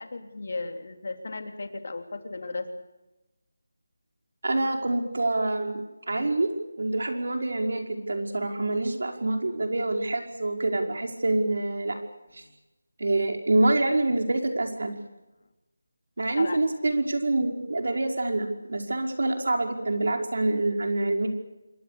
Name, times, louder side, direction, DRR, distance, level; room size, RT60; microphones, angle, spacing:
voice 1, 0.0-2.7 16.3-16.6, left 3 dB, 55° left, 6 dB, 3.2 m, -35 dB
voice 2, 4.4-6.5 6.8-12.0 12.3-12.4 13.0-14.9 16.2-21.3, right 2 dB, 65° right, 3 dB, 5.3 m, -26 dB
27.0 x 22.5 x 6.9 m, 1.0 s
figure-of-eight pair, 175°, 0 cm